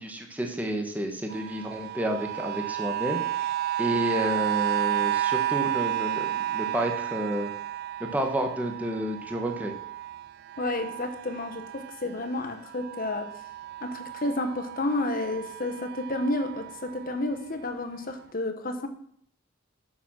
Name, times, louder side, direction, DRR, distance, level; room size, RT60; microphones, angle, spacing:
voice 1, 0.0-3.5 3.8-7.5 8.0-9.7, right 1 dB, 10° right, 3 dB, 1.1 m, -30 dB
sound 1, 1.3-12.3 12.7-17.3 17.9-18.0, right 13 dB, 50° right, 0.3 m, -32 dB
voice 2, 10.6-13.3 13.8-18.9, left 2 dB, 45° left, 7 dB, 1.1 m, -31 dB
7.2 x 6.9 x 6.3 m, 0.65 s
head